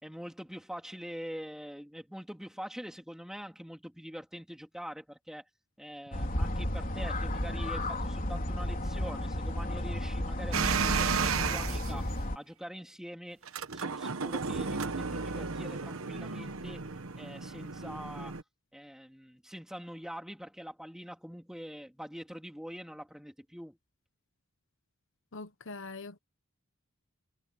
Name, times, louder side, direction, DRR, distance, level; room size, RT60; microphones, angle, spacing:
voice 1, 0.0-5.4 5.8-12.0 12.3-16.9 17.2-18.4 18.7-23.8, equal, 5° right, 3.1 m, -44 dB
sound 1, 6.1-12.4, left 1 dB, 40° left, 3.9 m, -33 dB
sound 2, 10.5-11.9 13.4-18.4, right 5 dB, 70° right, 1.1 m, -33 dB
voice 2, 25.3-26.2, left 3 dB, 60° left, 1.2 m, -43 dB
head